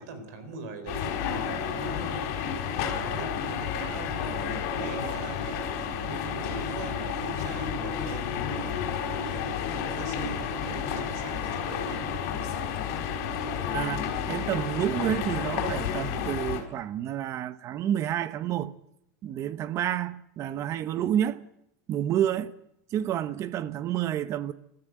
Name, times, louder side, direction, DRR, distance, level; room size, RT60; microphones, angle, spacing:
voice 1, 0.0-2.3 2.7-5.7 6.1-8.9 9.3-12.1, right 3 dB, 75° right, 4.5 m, -42 dB
sound 1, 0.9-16.6, left 7 dB, 60° left, 4.7 m, -31 dB
voice 2, 13.7-18.7 19.2-21.4 21.9-22.5 22.9-24.5, right 11 dB, 35° right, 0.9 m, -29 dB
30.0 x 13.5 x 8.0 m
supercardioid pair, 160°, 9 cm